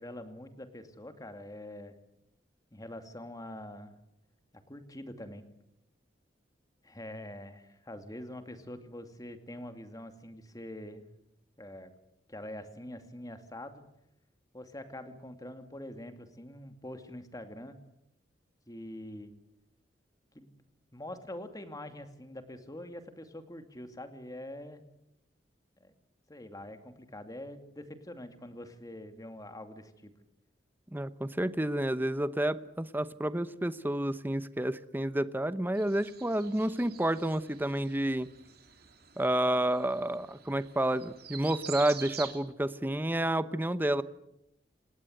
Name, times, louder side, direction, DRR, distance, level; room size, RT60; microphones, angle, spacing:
voice 1, 0.0-1.9 2.7-3.9 4.7-5.4 6.8-11.0 11.6-11.9 12.3-13.8 14.5-17.8 18.7-19.3 20.3-20.5 20.9-24.8 25.8-25.9 26.3-30.1, left 1 dB, 20° left, 7 dB, 2.4 m, -44 dB
voice 2, 30.9-38.3 39.2-44.0, right 1 dB, 10° right, 13 dB, 0.9 m, -30 dB
sound 1, 35.7-42.3, right 8 dB, 60° right, 3.3 m, -47 dB
28.5 x 18.5 x 7.9 m, 0.84 s
head